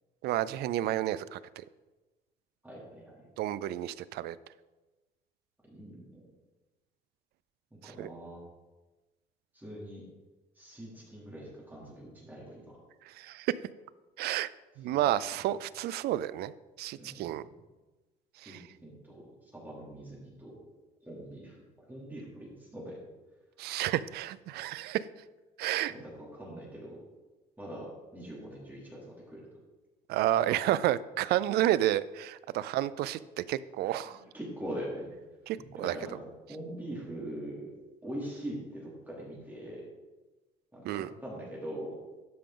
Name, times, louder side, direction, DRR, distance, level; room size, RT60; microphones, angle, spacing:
voice 1, 0.2-1.4 3.4-4.4 7.8-8.1 13.1-13.5 14.2-14.5 14.8-16.5 16.8-17.4 18.4-18.6 23.6-25.1 25.6-25.9 30.1-34.2 35.5-36.0 40.8-41.1, right 13 dB, 70° right, 17 dB, 0.4 m, -30 dB
voice 2, 2.6-3.2 5.7-6.2 7.7-8.4 9.5-10.0 10.6-12.6 14.9-15.0 16.9-17.5 18.5-19.2 19.5-20.6 21.0-21.6 21.9-23.0 25.9-27.0 27.6-29.4 33.8-35.1 35.7-37.7 38.0-39.8 40.7-42.0, right 1 dB, 10° right, -5 dB, 2.9 m, -42 dB
12.5 x 5.1 x 3.8 m, 1.2 s
cardioid pair, 110°, 17 cm